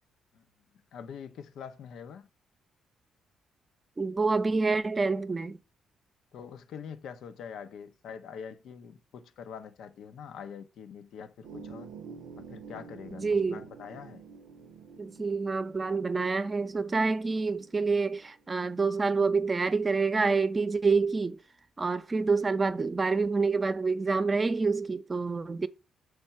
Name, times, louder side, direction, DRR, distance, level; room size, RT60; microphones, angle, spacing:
voice 1, 0.9-2.3 6.3-11.9 12.5-14.2, left 7 dB, 75° left, 0.7 m, -44 dB
voice 2, 4.0-5.6 13.2-13.6 15.0-21.4 21.8-25.7, right 4 dB, 30° right, 0.7 m, -27 dB
sound 1, 11.4-18.4, right 5 dB, 90° right, 0.6 m, -49 dB
6.4 x 3.4 x 5.8 m
cardioid pair, 90°, 0 cm